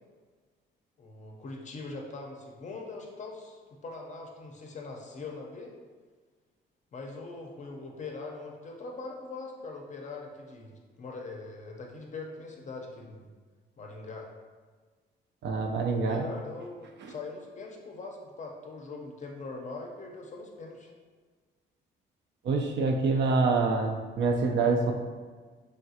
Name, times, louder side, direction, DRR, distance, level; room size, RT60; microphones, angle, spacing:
voice 1, 1.0-5.7 6.9-13.3 13.8-14.3 15.9-20.9, left 3 dB, 40° left, 1 dB, 0.5 m, -42 dB
voice 2, 15.4-16.3 17.0-17.1 22.4-24.9, right 4 dB, 60° right, 3 dB, 0.4 m, -26 dB
3.3 x 2.3 x 2.7 m, 1.5 s
cardioid pair, 90°, 20 cm